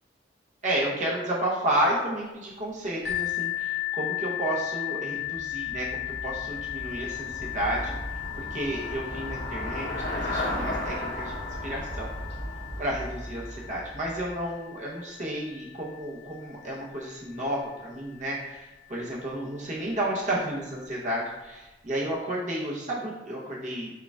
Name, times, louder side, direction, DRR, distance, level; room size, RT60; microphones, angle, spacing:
voice 1, 0.6-7.9 8.3-11.3 11.6-12.1 12.8-23.9, right 1 dB, 40° right, -5 dB, 0.9 m, -31 dB
sound 1, 3.0-18.6 19.4-19.5 20.0-20.1, left 15 dB, 70° left, 0.9 m, -36 dB
Traffic noise roadway noise / Bicycle, 5.2-14.4, left 1 dB, 85° left, 1.5 m, -35 dB
4.7 x 4.6 x 2.4 m, 1.1 s
head